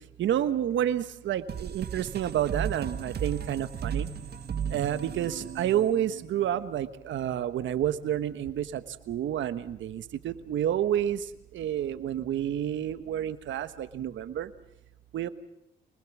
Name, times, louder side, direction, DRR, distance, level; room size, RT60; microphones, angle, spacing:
voice 1, 0.2-4.1 4.7-11.2 11.5-14.5 15.1-15.3, right 10 dB, 70° right, 12 dB, 1.3 m, -29 dB
sound 1, 1.5-6.8, right 7 dB, 55° right, 1.6 m, -35 dB
sound 2, 7.8-8.1 8.4-8.7 9.1-9.9 10.3-10.4 10.9-11.2 11.6-11.7 12.2-12.4 12.9-13.1 13.6-14.0, right 1 dB, 5° right, 7.7 m, -57 dB
25.5 x 20.0 x 7.3 m, 0.85 s
cardioid pair, 90°, 20 cm